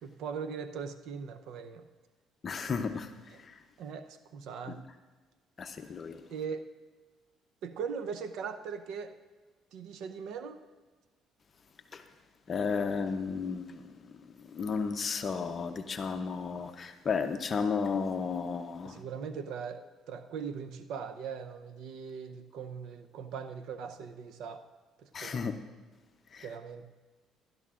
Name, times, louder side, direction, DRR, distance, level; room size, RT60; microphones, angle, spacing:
voice 1, 0.0-1.9 3.3-3.4 3.8-4.8 6.3-6.7 7.6-9.1 9.7-10.6 18.8-24.6 25.0-25.3 26.4-26.9, right 6 dB, 75° right, 9 dB, 0.7 m, -40 dB
voice 2, 2.4-3.1 3.5-3.6 4.7-4.8 5.6-6.2 11.9-12.0 12.5-13.8 14.4-19.0 25.1-25.5 26.3-26.5, left 5 dB, 40° left, 7 dB, 0.7 m, -33 dB
16.5 x 12.0 x 2.5 m, 1.3 s
cardioid pair, 100°, 0 cm